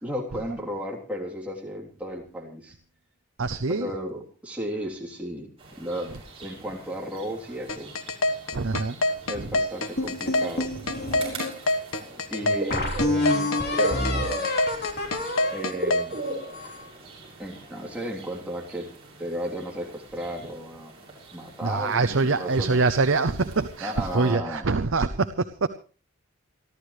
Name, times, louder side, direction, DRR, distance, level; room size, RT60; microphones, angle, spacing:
voice 1, 0.0-2.8 3.7-8.0 9.3-10.7 12.3-12.9 13.3-14.6 15.5-16.2 17.4-18.9 19.2-20.9 21.3-22.9 23.8-24.8, equal, 5° right, -3 dB, 3.2 m, -34 dB
voice 2, 3.4-3.9 8.5-9.1 9.4-9.5 11.0-11.5 13.1-13.2 21.6-25.7, right 3 dB, 60° right, 10 dB, 0.7 m, -25 dB
sound 1, 5.6-24.3, right 2 dB, 25° right, 7.0 m, -40 dB
sound 2, 7.7-16.1, left 2 dB, 70° left, 1.4 m, -25 dB
sound 3, 10.0-11.5 12.1-12.2 12.7-16.9, left 2 dB, 45° left, 3.4 m, -28 dB
28.5 x 12.0 x 3.2 m, 0.37 s
head